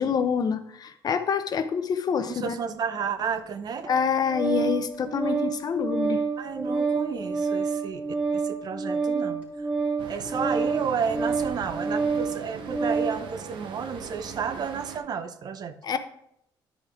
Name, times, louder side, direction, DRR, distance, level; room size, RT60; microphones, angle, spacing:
voice 1, 0.0-2.5 3.9-6.2 15.8-16.0, left 7 dB, 50° left, 10 dB, 0.7 m, -26 dB
voice 2, 2.2-3.9 6.4-8.1 8.3-9.7 10.1-15.7, right 6 dB, 55° right, 11 dB, 0.7 m, -32 dB
Organ, 3.8-13.2, right 4 dB, 15° right, 2.5 m, -28 dB
Traffic noise roadway noise, 10.0-15.0, right 7 dB, 75° right, 0.9 m, -41 dB
10.5 x 5.0 x 3.6 m, 0.75 s
cardioid pair, 100°, 8 cm